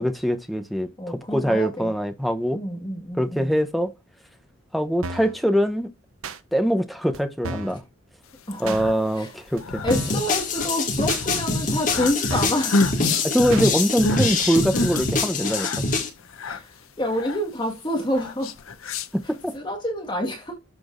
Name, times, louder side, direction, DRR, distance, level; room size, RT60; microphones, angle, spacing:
voice 1, 0.0-2.6 3.2-3.9 4.7-5.9 6.5-7.8 8.6-9.8 13.2-15.9 19.1-19.5, equal, ahead, 0.8 m, -23 dB
voice 2, 1.0-1.9 2.5-3.6 8.5-8.8 9.1-9.3 9.8-13.0 16.4-18.5 19.5-20.5, left 1 dB, 20° left, 1.6 m, -28 dB
sound 1, 5.0-5.4 6.2-6.4 7.1-7.2 7.4-7.8 8.7-8.8 9.6-9.7 9.9-10.2 11.1-11.2 12.0-12.1 12.3-12.6 13.5-13.7 14.4-14.5, right 3 dB, 75° right, 0.9 m, -33 dB
sound 2, 8.4-19.6, left 2 dB, 75° left, 0.7 m, -30 dB
sound 3, 9.9-16.1, left 3 dB, 40° left, 1.8 m, -24 dB
13.0 x 4.6 x 2.5 m
head